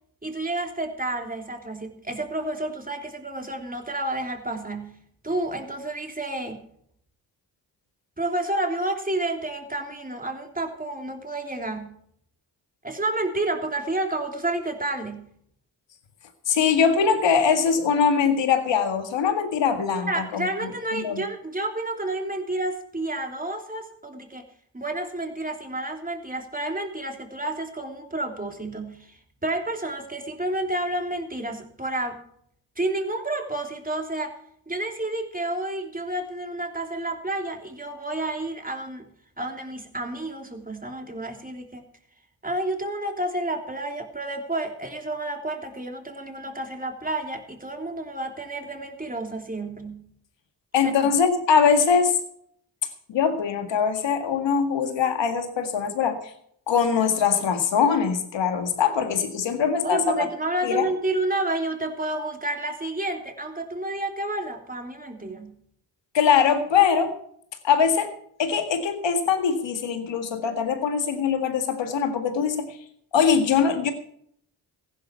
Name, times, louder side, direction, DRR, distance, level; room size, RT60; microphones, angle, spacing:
voice 1, 0.2-5.0 5.2-6.6 8.2-11.9 12.8-15.3 20.1-24.5 24.7-32.2 32.8-34.4 34.7-39.1 39.4-41.8 42.4-50.0 51.0-51.1 59.8-65.5, right 2 dB, 20° right, 3 dB, 3.3 m, -30 dB
voice 2, 16.5-20.4 20.9-21.2 50.7-52.2 53.1-56.2 56.7-60.3 60.6-60.9 66.1-67.1 67.6-68.1 68.4-72.7 73.1-73.9, left 6 dB, 80° left, 7 dB, 2.0 m, -22 dB
15.0 x 11.5 x 4.6 m, 0.67 s
supercardioid pair, 40°, 43 cm